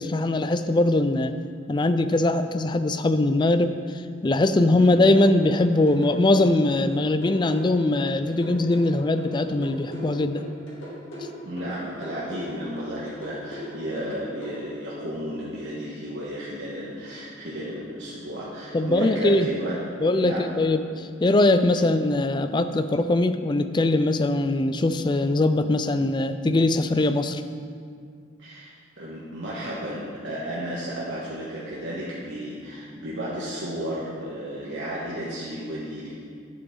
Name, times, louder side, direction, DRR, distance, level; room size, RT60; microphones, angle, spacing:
voice 1, 0.0-1.4 1.7-3.8 4.2-10.4 18.7-19.5 20.0-27.4, left 2 dB, 25° left, 10 dB, 0.3 m, -21 dB
sound 1, 5.1-14.5, equal, 85° left, 2.5 m, -39 dB
voice 2, 11.4-19.8 20.1-20.5 21.7-21.8 28.4-36.1, equal, 65° right, -8 dB, 1.4 m, -33 dB
10.5 x 8.0 x 3.8 m, 2.2 s
head